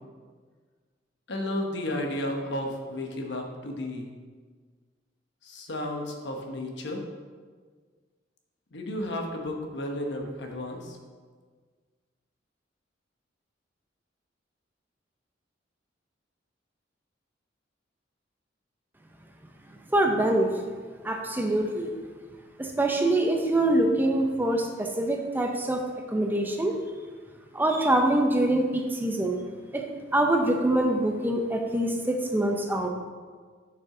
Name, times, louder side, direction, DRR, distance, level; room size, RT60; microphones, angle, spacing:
voice 1, 1.3-4.1 5.4-7.0 8.7-11.0, left 1 dB, 65° left, 2 dB, 1.0 m, -33 dB
voice 2, 19.9-20.6 21.0-21.9 22.6-25.8 26.1-26.8 27.5-29.4 29.7-29.9 30.1-32.9, right 1 dB, 10° right, 2 dB, 0.6 m, -24 dB
7.1 x 6.1 x 3.7 m, 1.5 s
head